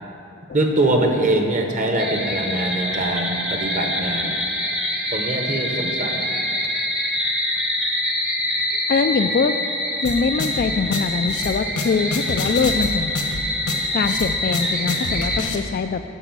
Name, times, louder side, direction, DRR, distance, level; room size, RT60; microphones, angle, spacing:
voice 1, 0.5-4.3 5.1-6.3, right 1 dB, 35° right, 2 dB, 1.0 m, -23 dB
sound 1, 2.0-15.4, left 1 dB, 5° right, 0.8 m, -25 dB
voice 2, 8.9-9.6 10.0-13.1 13.9-16.0, left 5 dB, 40° left, 9 dB, 0.3 m, -23 dB
sound 2, 10.0-15.6, left 2 dB, 70° left, 1.0 m, -28 dB
11.0 x 5.5 x 7.4 m, 3.0 s
head